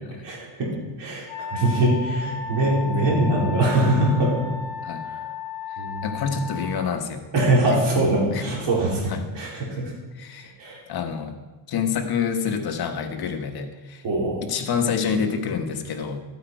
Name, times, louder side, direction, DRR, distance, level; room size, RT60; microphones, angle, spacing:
voice 1, 0.2-0.7 1.0-4.4 5.1-5.2 5.8-6.2 7.3-9.9 10.6-10.8 14.0-14.4, right 1 dB, 60° right, -4 dB, 3.8 m, -22 dB
Wind instrument woodwind instrument, 1.3-6.8, left 5 dB, 70° left, 1.1 m, -34 dB
voice 2, 6.0-7.2 7.7-8.1 8.3-8.5 9.1-9.2 10.1-10.5 10.9-11.3 11.7-14.0 14.4-16.2, left 6 dB, 50° left, 5 dB, 1.2 m, -27 dB
13.0 x 8.4 x 4.6 m, 1.2 s
cardioid pair, 150°, 48 cm